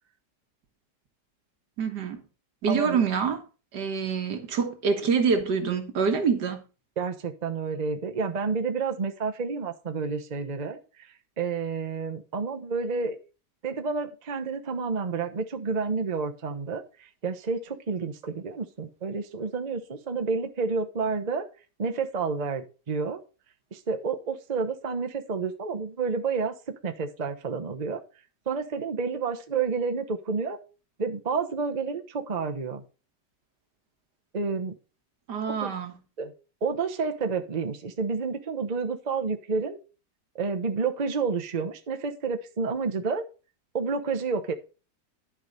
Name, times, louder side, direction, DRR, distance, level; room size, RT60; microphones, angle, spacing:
voice 1, 1.8-2.2 2.6-3.4 3.7-6.6 35.3-35.9, right 6 dB, 70° right, 1.9 m, -26 dB
voice 2, 2.7-3.0 7.0-11.1 11.4-13.2 13.6-21.5 21.8-23.2 23.7-26.5 26.8-28.0 28.5-30.6 31.0-32.8 34.3-34.7 35.6-35.7 36.2-36.3 36.6-39.8 40.3-43.2 43.7-44.5, right 5 dB, 30° right, 0.8 m, -30 dB
11.5 x 4.9 x 5.2 m
omnidirectional pair, 1.9 m